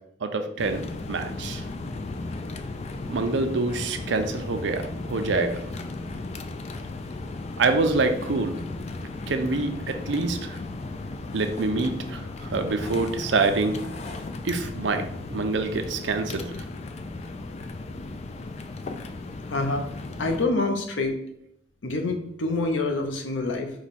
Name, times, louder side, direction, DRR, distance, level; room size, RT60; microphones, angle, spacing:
voice 1, 0.2-1.6 3.1-5.6 7.6-8.6 9.3-10.6 11.3-13.8 14.4-15.0 15.3-16.6, right 3 dB, 75° right, 7 dB, 0.5 m, -26 dB
sound 1, 0.6-20.5, left 2 dB, 35° left, 0.3 m, -35 dB
voice 2, 19.5-19.9 20.2-21.2 21.8-23.7, left 2 dB, 90° left, 4 dB, 0.7 m, -26 dB
4.8 x 2.3 x 4.1 m, 0.71 s
head